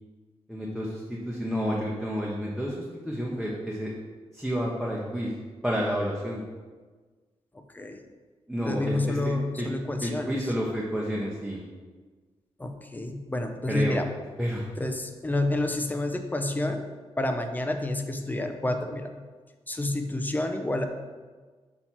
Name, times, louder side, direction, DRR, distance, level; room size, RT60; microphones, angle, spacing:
voice 1, 0.5-3.9 4.3-5.3 5.6-6.4 8.5-9.7 10.0-11.6 13.7-14.0 14.4-14.7, equal, ahead, -5 dB, 0.9 m, -30 dB
voice 2, 7.5-8.0 8.6-10.4 12.6-14.1 14.8-16.9 17.2-19.1 19.7-20.8, left 2 dB, 15° left, 5 dB, 0.6 m, -29 dB
6.3 x 2.9 x 5.7 m, 1.4 s
cardioid pair, 70°, 11 cm